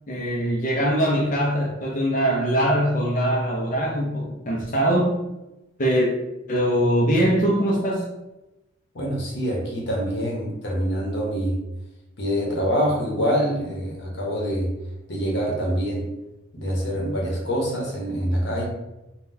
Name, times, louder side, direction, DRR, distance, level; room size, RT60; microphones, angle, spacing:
voice 1, 0.1-5.2 5.8-6.1 6.5-8.0, equal, 40° left, -2 dB, 0.5 m, -22 dB
voice 2, 8.9-11.6 12.2-14.7 15.1-16.0 16.5-18.7, equal, 60° left, -1 dB, 0.9 m, -25 dB
3.7 x 2.2 x 2.6 m, 0.98 s
head